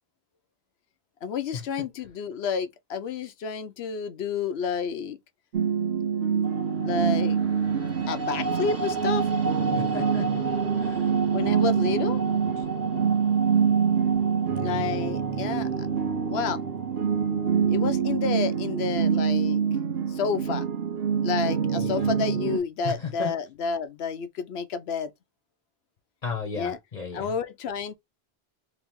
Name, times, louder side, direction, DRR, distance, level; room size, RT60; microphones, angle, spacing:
voice 1, 1.2-5.2 6.8-7.4 8.1-9.3 11.3-12.2 14.6-15.9 16.3-16.6 17.7-19.6 20.1-20.7 21.2-25.1 26.5-26.8 27.1-27.9, left 6 dB, 80° left, 0.9 m, -30 dB
sound 1, 5.5-22.6, right 7 dB, 75° right, 0.9 m, -25 dB
sound 2, 6.4-18.7, right 2 dB, 15° right, 0.9 m, -35 dB
voice 2, 9.7-10.3 10.7-11.1 21.8-22.1 22.8-23.3 26.2-27.3, left 5 dB, 40° left, 1.0 m, -34 dB
3.3 x 3.1 x 3.4 m
omnidirectional pair, 1.1 m